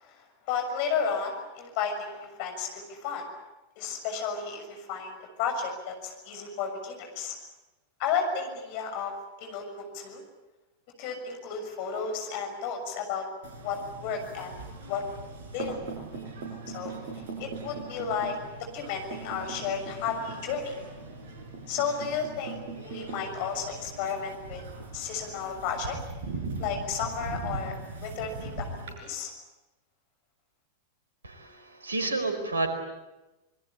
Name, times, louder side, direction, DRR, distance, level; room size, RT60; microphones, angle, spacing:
voice 1, 0.0-3.3 3.8-7.4 8.0-9.1 9.4-9.6 9.9-10.2 11.0-13.3 13.6-14.5 14.9-15.0 15.5-15.8 16.7-17.0 17.4-18.4 18.7-20.8 21.7-24.6 24.9-26.0 26.6-28.7 29.0-29.3, left 6 dB, 45° left, 5 dB, 6.6 m, -33 dB
sound 1, 13.4-28.9, right 3 dB, 55° right, 6.0 m, -40 dB
voice 2, 31.2-32.7, right 3 dB, 75° right, 7 dB, 4.7 m, -30 dB
26.0 x 22.0 x 8.7 m, 1.0 s
figure-of-eight pair, 90°, 0 cm